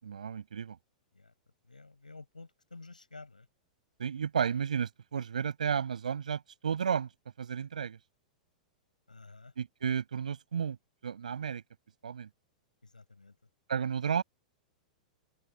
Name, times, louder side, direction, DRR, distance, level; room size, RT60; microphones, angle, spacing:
voice 1, 0.0-0.8 4.0-7.1 7.4-8.0 9.6-10.8 11.0-11.6 12.0-12.3 13.7-14.2, right 7 dB, 75° right, 6.4 m, -32 dB
voice 2, 1.7-3.5 9.1-9.5 12.8-13.3, left 3 dB, 90° left, 7.8 m, -51 dB
figure-of-eight pair, 100°, 4 cm